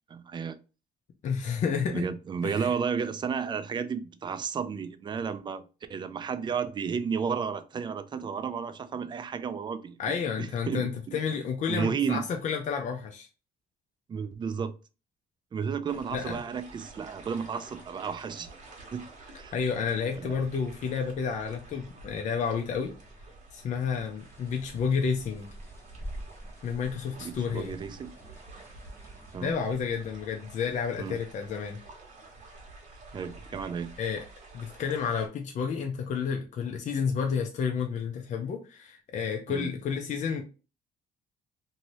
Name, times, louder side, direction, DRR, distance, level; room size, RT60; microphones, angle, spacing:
voice 1, 0.1-0.6 1.9-5.6 5.9-10.0 10.4-11.2 11.7-12.2 14.1-14.7 15.5-18.5 18.9-19.0 19.3-19.5 20.2-20.4 27.2-28.1 29.3-29.5 31.0-31.2 33.1-33.9 39.5-39.7, right 6 dB, 25° right, 0.4 m, -32 dB
voice 2, 1.2-2.0 2.4-2.7 10.0-13.3 16.1-16.4 19.5-22.9 23.5-25.5 26.6-27.7 29.4-31.8 34.0-34.2 34.5-40.4, left 6 dB, 45° left, 0.5 m, -30 dB
sound 1, 15.9-35.3, right 2 dB, 50° right, 1.2 m, -50 dB
sound 2, 24.2-29.4, equal, 15° left, 1.2 m, -47 dB
2.7 x 2.7 x 3.0 m
cardioid pair, 110°, 17 cm